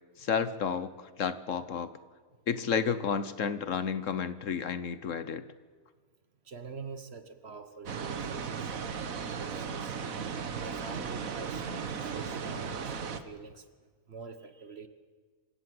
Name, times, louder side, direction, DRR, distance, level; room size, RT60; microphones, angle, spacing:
voice 1, 0.2-1.9 2.5-5.4, left 6 dB, 60° left, 13 dB, 1.2 m, -31 dB
voice 2, 6.4-8.9 9.4-9.9 10.3-13.7 14.1-14.9, right 5 dB, 45° right, 10 dB, 1.4 m, -46 dB
sound 1, 7.9-13.2, right 6 dB, 65° right, 1.6 m, -36 dB
26.5 x 16.5 x 7.8 m, 1.5 s
omnidirectional pair, 1.5 m